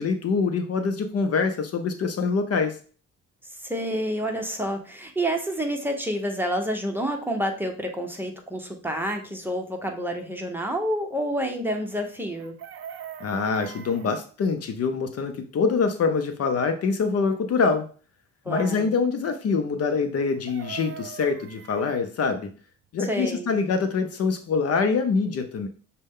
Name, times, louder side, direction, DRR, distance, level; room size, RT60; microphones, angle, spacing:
voice 1, 0.0-2.8 13.2-17.9 18.5-22.5 22.9-25.7, left 4 dB, 55° left, 7 dB, 0.6 m, -25 dB
voice 2, 3.6-12.5 18.5-18.9 23.0-23.5, equal, 5° right, 3 dB, 0.9 m, -29 dB
Chicken rooster, 12.3-14.2 20.2-22.1 24.3-24.4 24.7-24.9, right 8 dB, 45° right, 0.4 m, -42 dB
6.4 x 2.2 x 3.6 m, 0.40 s
cardioid pair, 90°, 30 cm